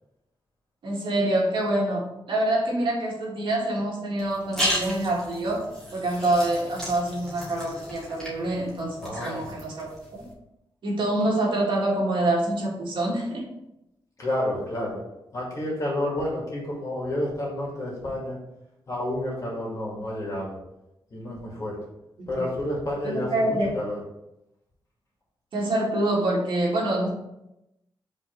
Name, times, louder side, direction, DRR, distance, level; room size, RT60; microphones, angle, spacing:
voice 1, 0.8-5.6 5.9-10.3 10.8-13.5 23.0-23.7 25.5-27.1, right 1 dB, 70° right, -3 dB, 2.0 m, -26 dB
sound 1, 4.2-10.3, equal, 5° left, 1.6 m, -34 dB
voice 2, 9.0-9.5 14.2-15.0 15.3-18.4 18.9-20.6 21.1-21.8 22.3-24.0, left 1 dB, 40° left, -4 dB, 2.4 m, -30 dB
5.3 x 3.9 x 4.6 m, 0.87 s
wide cardioid pair, 170°, 9 cm